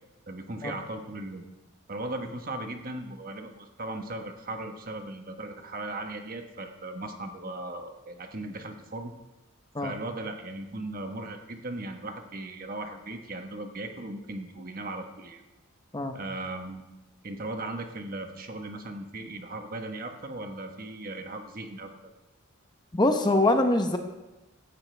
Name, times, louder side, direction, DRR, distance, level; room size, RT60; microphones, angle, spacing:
voice 1, 0.3-1.5 1.9-9.1 9.8-15.4 16.1-16.8 17.2-21.9, right 2 dB, 45° right, 5 dB, 1.2 m, -37 dB
voice 2, 22.9-24.0, left 2 dB, 20° left, 6 dB, 0.8 m, -23 dB
16.5 x 11.5 x 3.4 m, 1.1 s
head